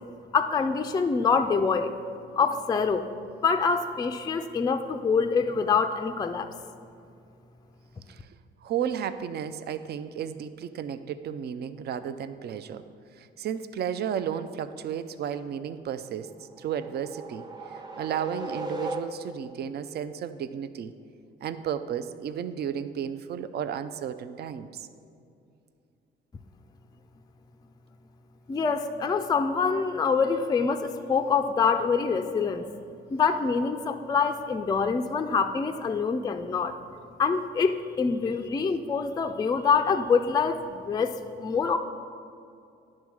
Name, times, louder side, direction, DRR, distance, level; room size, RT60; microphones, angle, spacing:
voice 1, 0.3-1.9 2.4-3.0 3.4-6.5 28.5-32.6 33.1-36.8 37.2-41.8, left 5 dB, 20° left, 7 dB, 0.3 m, -25 dB
voice 2, 8.6-12.8 13.2-16.3 16.6-17.4 17.7-20.9 21.4-24.9, right 8 dB, 55° right, 11 dB, 0.4 m, -33 dB
sound 1, 16.3-19.6, right 2 dB, 20° right, 0.8 m, -37 dB
10.0 x 3.6 x 6.2 m, 2.5 s
cardioid pair, 90°, 20 cm